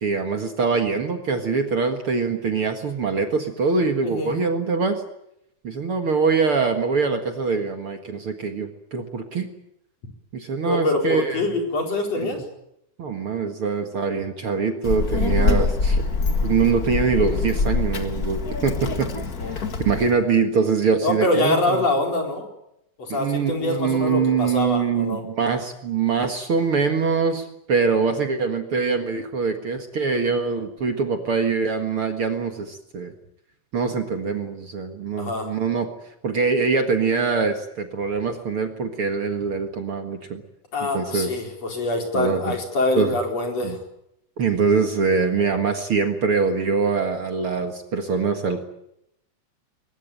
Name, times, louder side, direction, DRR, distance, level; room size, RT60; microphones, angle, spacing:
voice 1, 0.0-5.0 5.6-9.5 10.3-11.4 12.2-12.3 13.0-16.0 16.4-19.1 19.5-21.8 23.1-33.1 33.7-35.9 36.2-40.4 40.9-41.3 42.1-42.5 43.0-43.1 43.6-43.8 44.4-48.6, right 5 dB, 50° right, 5 dB, 2.3 m, -23 dB
voice 2, 4.0-4.3 10.6-12.4 19.4-19.6 21.0-22.5 23.0-25.2 35.2-35.5 40.7-43.8, left 2 dB, 55° left, 2 dB, 5.5 m, -24 dB
Child speech kid speaking, 14.8-20.1, left 4 dB, 35° left, 1.7 m, -24 dB
22.5 x 21.0 x 8.9 m, 0.80 s
omnidirectional pair, 3.6 m